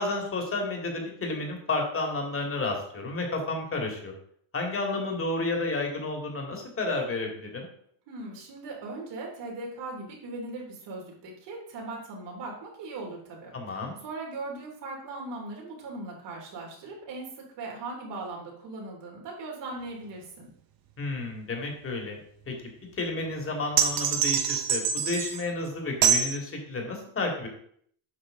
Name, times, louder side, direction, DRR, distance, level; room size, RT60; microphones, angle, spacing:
voice 1, 0.0-4.1 4.5-7.7 13.5-14.0 21.0-22.2 22.5-22.6 22.9-27.5, left 2 dB, 30° left, 2 dB, 2.3 m, -31 dB
voice 2, 8.1-20.5, right 2 dB, 70° right, -1 dB, 3.2 m, -39 dB
sound 1, 23.8-25.4 26.0-26.4, right 7 dB, 55° right, 1.1 m, -24 dB
8.4 x 5.6 x 3.9 m, 0.64 s
cardioid pair, 115°, 44 cm